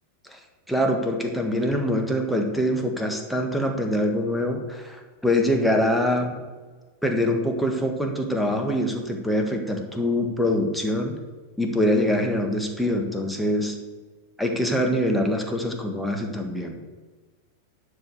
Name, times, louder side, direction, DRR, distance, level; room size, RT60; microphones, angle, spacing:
voice 1, 0.7-6.4 7.0-11.1 11.6-13.8 14.4-16.8, left 1 dB, ahead, 2 dB, 1.6 m, -24 dB
11.0 x 4.9 x 7.1 m, 1.4 s
figure-of-eight pair, 90°, 0 cm